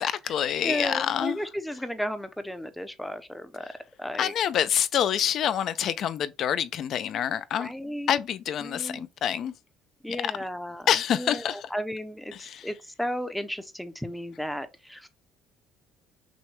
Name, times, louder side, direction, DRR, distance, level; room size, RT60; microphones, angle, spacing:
voice 1, 0.0-1.4 4.2-7.7 8.1-9.5 10.1-10.3 10.9-11.6 12.4-12.7, left 9 dB, 50° left, 0.5 m, -27 dB
voice 2, 0.6-3.7 4.0-4.3 7.6-8.2 8.6-9.0 10.0-15.1, equal, 5° left, 0.6 m, -34 dB
6.1 x 2.2 x 3.1 m
cardioid pair, 135°, 0 cm